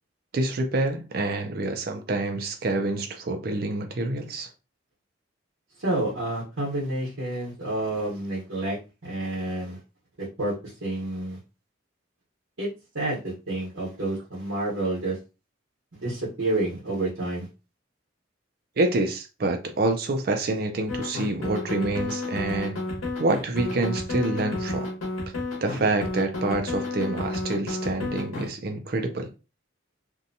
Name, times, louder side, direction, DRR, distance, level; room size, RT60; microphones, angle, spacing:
voice 1, 0.3-4.5 18.8-22.8 23.2-24.9 25.6-29.3, right 2 dB, 50° right, 0.4 m, -27 dB
voice 2, 5.8-8.8 9.0-9.8 10.2-11.4 12.6-12.7 12.9-15.2 15.9-17.5, right 2 dB, 75° right, 1.0 m, -29 dB
sound 1, 20.9-28.5, left 2 dB, 85° left, 1.0 m, -31 dB
2.7 x 2.2 x 2.6 m
head